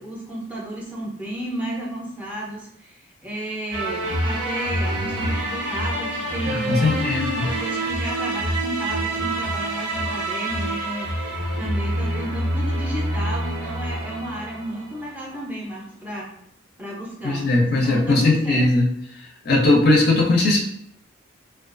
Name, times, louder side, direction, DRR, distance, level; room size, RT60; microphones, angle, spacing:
voice 1, 0.0-16.3 16.8-17.5 17.7-18.7, right 1 dB, 10° right, -4 dB, 0.5 m, -32 dB
sound 1, 3.7-15.1, right 1 dB, 70° right, 0.5 m, -27 dB
voice 2, 6.5-7.5 17.2-18.9 19.5-20.6, left 2 dB, 55° left, 0 dB, 0.5 m, -19 dB
2.3 x 2.3 x 2.5 m, 0.71 s
head